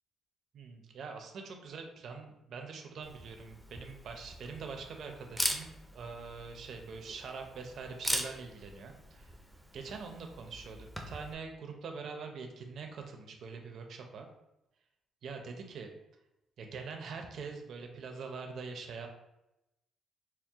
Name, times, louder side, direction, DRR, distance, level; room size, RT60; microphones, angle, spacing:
voice 1, 0.5-9.3 9.7-14.3 15.2-15.9 16.6-19.1, right 5 dB, 60° right, 4 dB, 0.6 m, -44 dB
Camera, 3.0-11.3, equal, ahead, 0.5 m, -41 dB
4.4 x 2.1 x 3.5 m, 0.89 s
cardioid pair, 120°, 0 cm